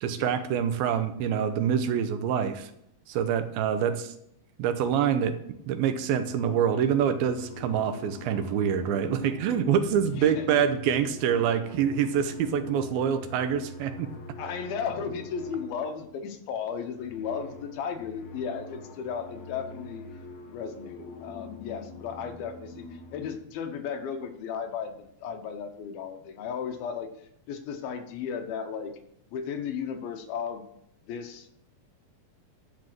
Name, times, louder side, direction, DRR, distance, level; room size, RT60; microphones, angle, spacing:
voice 1, 0.0-2.7 3.1-4.1 4.6-5.4 5.7-14.1, right 8 dB, 90° right, 10 dB, 2.7 m, -26 dB
sound 1, 5.5-5.8 6.2-16.3 16.8-23.4, left 2 dB, 65° left, 2.2 m, -43 dB
voice 2, 10.1-10.6 14.4-20.1 20.5-28.9 29.3-30.7 31.0-31.5, left 7 dB, 80° left, 6 dB, 2.9 m, -35 dB
11.5 x 4.9 x 7.7 m, 0.74 s
omnidirectional pair, 4.2 m